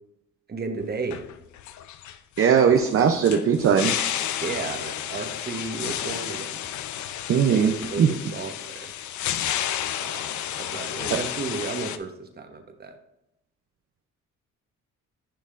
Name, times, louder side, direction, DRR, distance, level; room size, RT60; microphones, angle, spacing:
voice 1, 0.5-1.2 4.4-6.7 7.5-8.9 10.0-10.3 10.6-13.0, right 4 dB, 30° right, 6 dB, 1.1 m, -33 dB
sound 1, 0.8-12.0, left 11 dB, 70° left, 0.5 m, -31 dB
voice 2, 2.4-4.0 7.3-7.7 8.0-8.1, right 7 dB, 50° right, 5 dB, 0.6 m, -19 dB
10.0 x 5.4 x 2.5 m, 0.86 s
cardioid pair, 90°, 30 cm